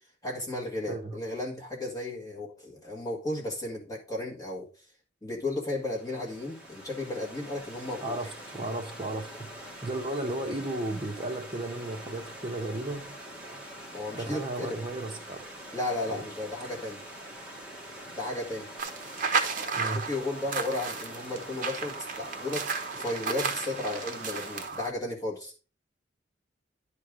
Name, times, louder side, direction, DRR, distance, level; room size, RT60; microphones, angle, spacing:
voice 1, 0.2-4.7 5.2-8.2 13.9-14.8 15.7-17.0 18.1-18.7 19.9-22.7 23.0-25.5, left 2 dB, 20° left, 1.7 m, -34 dB
Stream / Liquid, 5.8-24.7, right 1 dB, 5° right, 1.6 m, -44 dB
voice 2, 8.0-13.2 14.1-15.4 16.1-16.2 19.7-20.0, right 2 dB, 25° right, 1.2 m, -34 dB
sound 1, 18.8-24.9, right 5 dB, 45° right, 0.9 m, -33 dB
11.0 x 3.7 x 4.9 m
head